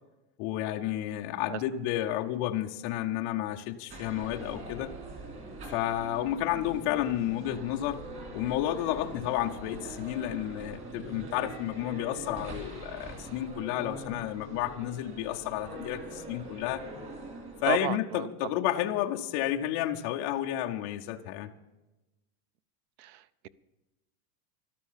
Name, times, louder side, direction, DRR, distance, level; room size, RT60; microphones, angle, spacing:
voice 1, 0.4-4.9 5.7-8.0 8.3-16.9 17.6-21.5, left 13 dB, 25° left, 2 dB, 0.4 m, -31 dB
sound 1, 3.9-17.8, right 2 dB, 25° right, 3.4 m, -43 dB
voice 2, 17.7-18.3 23.0-23.5, right 11 dB, 45° right, 21 dB, 0.6 m, -33 dB
12.5 x 12.5 x 7.2 m, 1.1 s
supercardioid pair, 175°, 46 cm